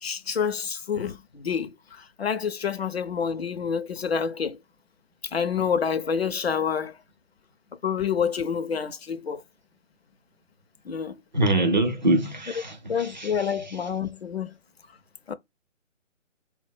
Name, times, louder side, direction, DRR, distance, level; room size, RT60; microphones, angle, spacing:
voice 1, 0.0-4.6 5.2-6.9 7.8-9.4 10.9-11.1 12.9-14.5 15.3-15.4, left 7 dB, 55° left, 0.5 m, -28 dB
voice 2, 11.3-13.5, right 2 dB, 40° right, 0.5 m, -24 dB
4.0 x 2.1 x 4.2 m
hypercardioid pair, 170°, 38 cm